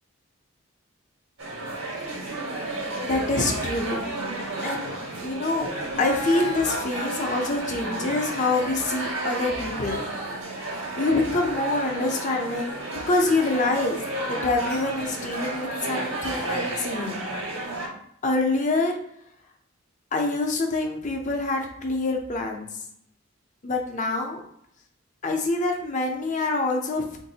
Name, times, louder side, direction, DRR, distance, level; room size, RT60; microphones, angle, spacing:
sound 1, 1.4-17.9, right 2 dB, 90° right, 1.2 m, -32 dB
voice 1, 3.0-4.0 4.6-4.9 5.2-5.7 6.0-10.1 11.0-14.0 14.3-17.2 18.2-19.0 20.1-22.7 23.6-24.4 25.2-27.2, left 2 dB, 40° left, 3 dB, 0.6 m, -26 dB
4.0 x 2.6 x 2.7 m, 0.74 s
head